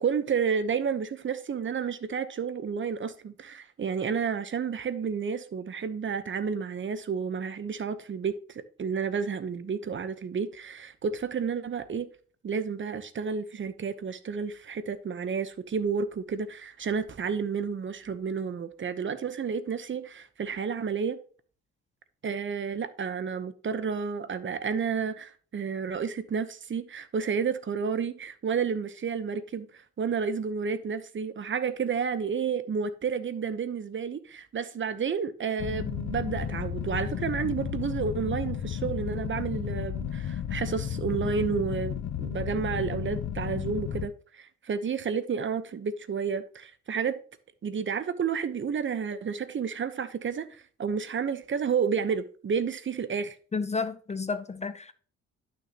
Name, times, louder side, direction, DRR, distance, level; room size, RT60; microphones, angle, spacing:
voice 1, 0.0-12.1 12.4-21.2 22.2-47.2 47.6-50.5 50.8-53.4, right 6 dB, 40° right, 0.9 m, -31 dB
sound 1, 35.6-44.1, left 9 dB, 60° left, 0.8 m, -33 dB
voice 2, 53.5-54.9, left 4 dB, 25° left, 0.6 m, -31 dB
11.5 x 6.3 x 2.9 m
cardioid pair, 90°, 30 cm